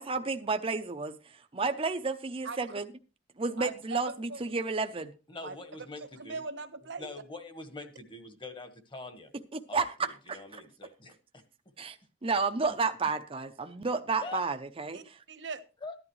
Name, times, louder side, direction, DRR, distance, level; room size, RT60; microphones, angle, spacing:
voice 1, 0.0-2.9 3.4-5.1 9.5-10.4 11.8-12.0 12.2-15.2, right 4 dB, 30° right, 0.7 m, -31 dB
voice 2, 2.4-2.8 3.6-4.4 5.4-5.6 6.0-7.1 14.9-15.6, right 4 dB, 65° right, 1.3 m, -40 dB
voice 3, 5.3-6.4 7.0-9.3 9.7-11.1 14.2-14.4 15.8-15.9, left 3 dB, 25° left, 1.5 m, -44 dB
14.5 x 11.0 x 3.2 m
head